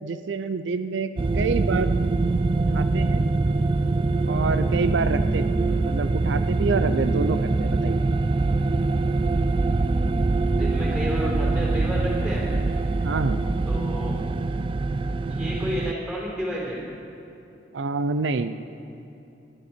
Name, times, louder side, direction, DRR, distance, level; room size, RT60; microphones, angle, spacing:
voice 1, 0.0-1.9 2.7-3.2 4.3-8.0 13.0-13.4 17.7-18.6, right 4 dB, 90° right, 11 dB, 0.5 m, -27 dB
sound 1, 1.2-15.9, right 3 dB, 30° right, 0.3 m, -23 dB
voice 2, 10.5-12.5 13.7-14.2 15.3-16.9, equal, 5° right, -4 dB, 4.0 m, -31 dB
19.0 x 11.0 x 4.4 m, 2.8 s
head